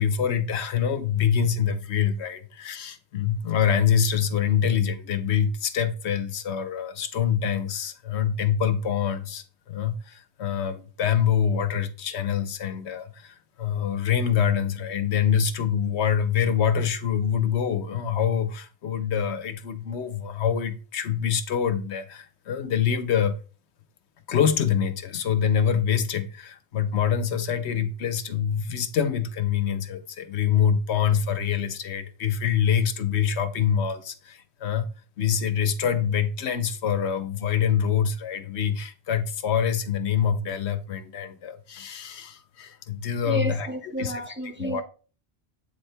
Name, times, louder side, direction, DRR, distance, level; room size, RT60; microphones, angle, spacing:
voice 1, 0.0-23.3 24.3-34.9 35.2-44.1 44.6-44.8, left 8 dB, 80° left, 1.0 m, -25 dB
voice 2, 43.2-44.8, equal, 10° right, 0.9 m, -31 dB
8.5 x 3.3 x 4.4 m
omnidirectional pair, 1.1 m